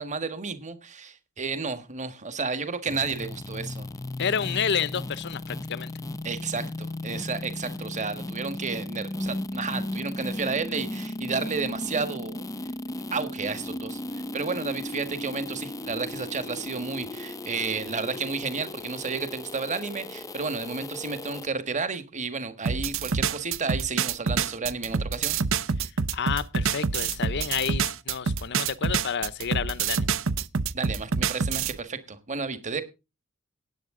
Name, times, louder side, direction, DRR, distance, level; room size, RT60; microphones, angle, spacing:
voice 1, 0.0-3.9 6.2-12.4 13.1-25.4 30.7-32.8, right 4 dB, 35° right, 11 dB, 1.5 m, -32 dB
sound 1, 2.9-21.5, left 2 dB, 15° left, 0.6 m, -36 dB
voice 2, 4.2-5.9 26.1-30.1, left 7 dB, 55° left, 18 dB, 0.7 m, -30 dB
sound 2, 22.7-31.8, right 5 dB, 60° right, 0.7 m, -27 dB
17.5 x 8.4 x 3.7 m, 0.28 s
head